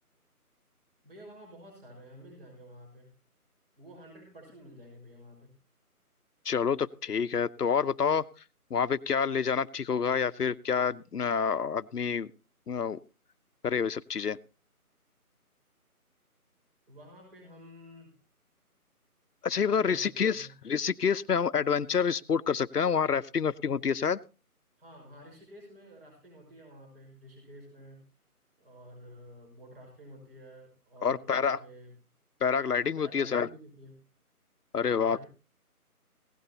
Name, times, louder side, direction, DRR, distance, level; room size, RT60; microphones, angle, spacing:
voice 1, 1.0-3.1 3.8-5.5 16.9-18.2 19.6-20.6 24.8-28.0 28.6-32.0 33.0-34.0 34.7-35.3, equal, 40° right, 0 dB, 5.8 m, -51 dB
voice 2, 6.4-8.2 8.7-12.3 12.7-13.0 13.6-14.4 19.4-24.2 31.0-31.6 32.4-33.5 34.7-35.2, left 6 dB, 80° left, 15 dB, 0.8 m, -28 dB
16.5 x 16.5 x 2.9 m, 0.32 s
figure-of-eight pair, 160°, 45 cm